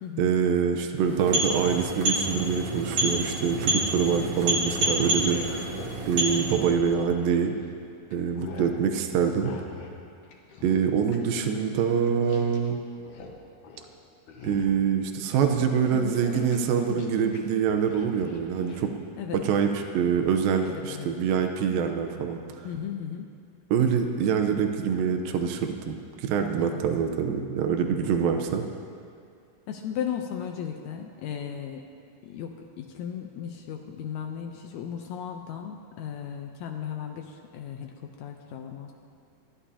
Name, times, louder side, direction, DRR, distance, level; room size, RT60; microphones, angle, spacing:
voice 1, 0.2-5.7 6.1-7.5 8.1-9.5 10.6-12.8 14.4-19.1 19.3-22.4 23.7-28.6, right 7 dB, 85° right, 5 dB, 2.6 m, -25 dB
sound 1, 1.0-6.8, right 1 dB, 55° right, 3.0 m, -28 dB
sound 2, 4.7-7.8 8.1-8.8 9.3-10.0 10.2-12.7 12.9-13.4 13.6-13.9 14.3-14.9 15.3-17.4 17.7-18.9 19.7-20.0, left 4 dB, 65° left, 2.6 m, -44 dB
voice 2, 15.9-16.6 16.9-17.0 19.2-19.4 20.6-21.1 22.6-23.3 26.6-26.8 28.0-28.2 29.7-31.9 32.2-38.9, left 8 dB, 85° left, 3 dB, 1.6 m, -36 dB
27.5 x 11.5 x 2.8 m, 2.3 s
omnidirectional pair, 4.1 m